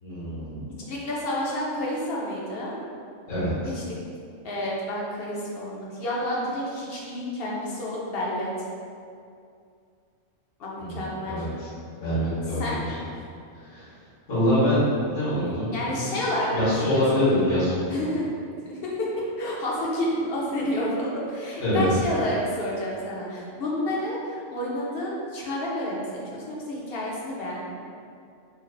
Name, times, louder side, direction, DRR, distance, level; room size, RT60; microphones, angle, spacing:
voice 1, 0.0-0.7 3.3-3.7 10.8-11.7 12.0-13.0 13.5-13.9 14.3-16.1 16.5-17.9 21.6-21.8, left 1 dB, 75° left, -11 dB, 1.6 m, -25 dB
voice 2, 0.9-2.8 3.7-4.0 4.4-8.5 10.6-11.5 12.6-12.8 15.7-17.0 17.9-18.2 18.7-19.1 19.4-27.7, left 1 dB, 55° left, -4 dB, 0.8 m, -30 dB
3.2 x 2.4 x 3.7 m, 2.4 s
omnidirectional pair, 1.3 m